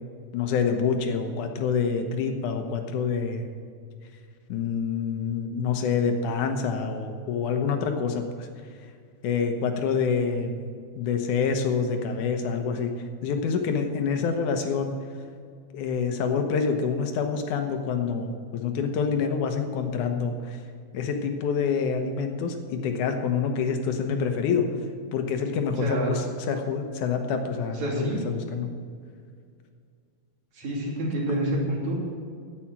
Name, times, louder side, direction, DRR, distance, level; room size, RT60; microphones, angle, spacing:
voice 1, 0.3-3.5 4.5-8.5 9.2-10.6 11.0-12.9 13.2-14.9 15.7-20.6 20.9-24.7 25.1-28.7, left 6 dB, 90° left, 5 dB, 2.6 m, -27 dB
voice 2, 25.8-26.1 27.7-28.2 30.5-32.1, right 1 dB, 70° right, -4 dB, 4.3 m, -28 dB
10.5 x 8.7 x 8.6 m, 2.2 s
omnidirectional pair, 3.4 m